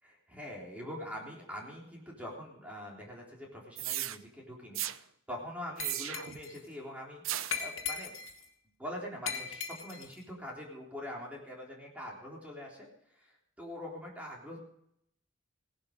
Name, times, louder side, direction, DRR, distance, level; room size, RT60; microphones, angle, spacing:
voice 1, 0.0-4.8 5.3-7.2 7.6-8.1 8.8-12.9 13.6-14.6, equal, 5° right, -2 dB, 3.7 m, -43 dB
sound 1, 3.8-4.2 4.7-5.0 5.8-6.4 7.2-7.7, right 13 dB, 80° right, 0.7 m, -35 dB
Glass, 5.8-6.6 7.5-8.4 9.3-10.1, left 6 dB, 85° left, 2.0 m, -38 dB
17.5 x 11.5 x 5.2 m, 0.73 s
head